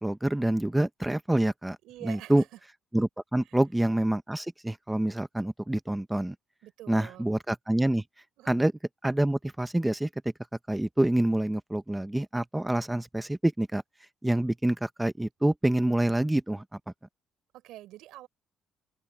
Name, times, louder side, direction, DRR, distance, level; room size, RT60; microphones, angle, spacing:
voice 1, 0.0-1.8 2.0-2.4 2.9-6.3 6.9-8.0 8.5-8.7 9.0-10.1 10.7-13.8 14.2-16.6, right 1 dB, 5° right, 0.8 m, -26 dB
voice 2, 1.8-2.5 3.5-3.6 6.6-7.3 8.4-8.6 17.5-18.3, right 15 dB, 85° right, 4.2 m, -46 dB
open air
cardioid pair, 160°, 0 cm